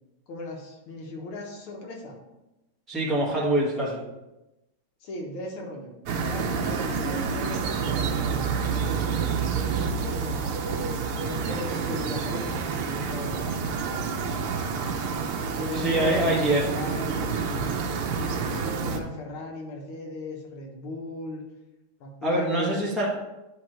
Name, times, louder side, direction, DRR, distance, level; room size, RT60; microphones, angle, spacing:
voice 1, 0.3-2.2 5.0-5.9 6.2-13.9 15.5-17.8 18.2-21.4 22.0-23.1, left 2 dB, 80° left, 0 dB, 2.1 m, -37 dB
voice 2, 2.9-4.0 15.8-16.6 22.2-23.1, right 1 dB, ahead, -6 dB, 0.7 m, -24 dB
sound 1, 6.1-19.0, right 5 dB, 85° right, 1.7 m, -28 dB
9.3 x 3.1 x 4.5 m, 0.97 s
omnidirectional pair, 2.3 m